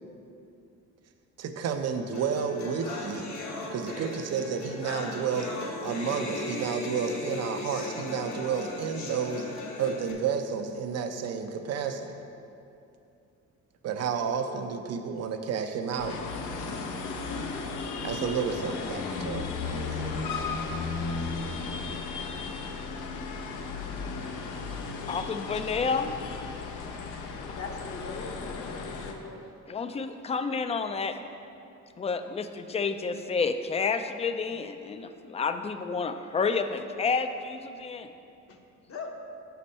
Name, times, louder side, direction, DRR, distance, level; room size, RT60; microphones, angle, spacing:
voice 1, 1.4-3.3 3.7-5.5 5.8-9.5 9.8-12.2 13.8-16.2 16.5-16.6 18.0-20.1, right 6 dB, 55° right, 7 dB, 0.6 m, -31 dB
sound 1, 2.1-10.1, left 2 dB, 65° left, 1.1 m, -37 dB
sound 2, 16.0-29.1, left 4 dB, 85° left, 0.7 m, -35 dB
voice 2, 25.1-26.1 29.7-31.2 32.0-38.1, left 5 dB, 20° left, 9 dB, 0.3 m, -30 dB
voice 3, 27.6-29.4 38.5-38.6 38.9-39.1, left 3 dB, 50° left, 2 dB, 0.8 m, -40 dB
6.8 x 5.3 x 4.2 m, 2.7 s
cardioid pair, 90°, 30 cm